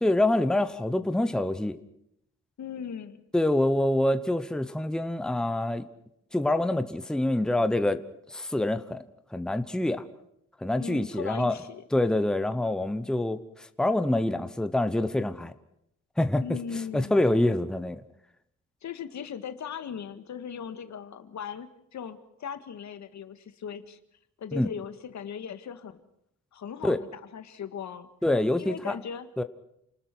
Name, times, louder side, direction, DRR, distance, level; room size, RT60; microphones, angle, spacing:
voice 1, 0.0-1.8 3.3-5.8 6.3-8.0 8.3-9.0 9.3-10.0 10.6-11.6 11.9-15.5 16.2-16.6 16.9-18.0 24.5-24.7 26.8-27.0 28.2-29.0 29.4-29.5, left 1 dB, ahead, 10 dB, 0.9 m, -26 dB
voice 2, 2.6-3.2 10.8-11.8 16.4-17.1 18.8-24.0 24.4-26.0 26.5-28.1 28.6-29.3, left 7 dB, 70° left, 10 dB, 1.9 m, -38 dB
29.0 x 20.0 x 6.1 m, 0.76 s
wide cardioid pair, 180°, 29 cm